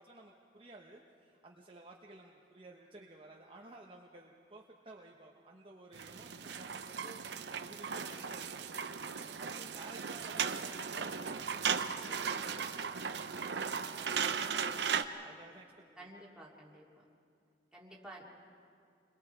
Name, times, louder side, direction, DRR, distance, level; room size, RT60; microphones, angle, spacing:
voice 1, 0.0-8.7 9.4-14.8 15.2-15.7 15.9-16.1, right 2 dB, 30° right, -1 dB, 1.1 m, -55 dB
sound 1, 5.9-15.0, right 6 dB, 70° right, 0.8 m, -37 dB
voice 2, 16.0-17.0 17.7-18.2, right 1 dB, 5° right, -4 dB, 2.9 m, -52 dB
29.0 x 22.0 x 4.6 m, 2.4 s
head